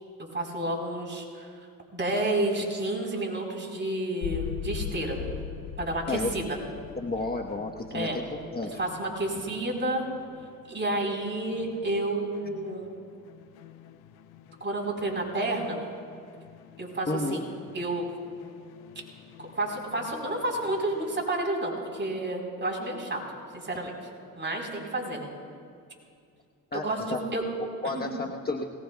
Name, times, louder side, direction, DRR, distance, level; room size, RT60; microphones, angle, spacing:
voice 1, 0.3-1.5 1.9-5.2 5.8-6.6 7.9-8.2 8.8-10.0 10.7-12.9 14.6-15.8 16.8-17.5 17.7-18.1 19.4-23.2 23.5-23.9 24.4-25.3 26.7-27.4 27.8-28.1, right 1 dB, 30° right, 0 dB, 4.1 m, -30 dB
sound 1, 4.2-21.2, left 9 dB, 85° left, 0.6 m, -43 dB
voice 2, 7.0-8.2 8.5-8.8 17.1-17.4 26.7-27.2 27.6-28.6, left 3 dB, 25° left, 1 dB, 1.1 m, -31 dB
21.5 x 18.5 x 2.3 m, 2.4 s
supercardioid pair, 65°, 36 cm